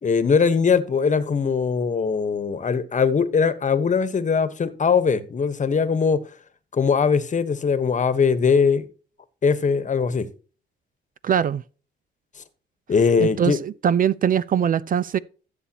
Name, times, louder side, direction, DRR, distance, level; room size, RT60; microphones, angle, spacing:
voice 1, 0.0-6.2 6.7-8.9 9.4-10.3 12.9-13.6, left 5 dB, 40° left, 1.2 m, -21 dB
voice 2, 11.2-11.6 13.2-15.2, right 8 dB, 45° right, 0.4 m, -22 dB
14.0 x 7.0 x 2.9 m
cardioid pair, 90°, 20 cm